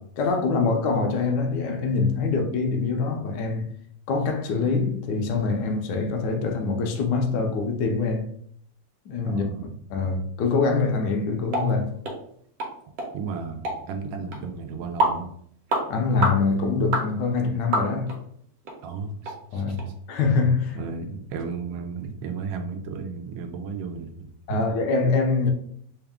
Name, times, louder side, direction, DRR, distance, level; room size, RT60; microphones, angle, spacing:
voice 1, 0.2-3.6 4.1-8.3 9.1-11.9 15.9-18.2 19.5-20.8 24.5-25.5, left 4 dB, 75° left, 1.2 m, -24 dB
voice 2, 9.3-9.7 13.1-15.3 18.8-19.8 20.7-24.6, right 5 dB, 90° right, 1.3 m, -34 dB
sound 1, 11.5-11.7 12.0-12.2 12.6-12.7 13.0-13.1 13.6-13.8 14.3-14.4 15.0-15.2 15.7-15.8 16.2-16.4 16.9-17.1 17.7-18.2 18.6-18.7 19.2-19.4 19.8-19.9, right 2 dB, 60° right, 1.2 m, -25 dB
3.5 x 2.4 x 3.5 m
omnidirectional pair, 1.9 m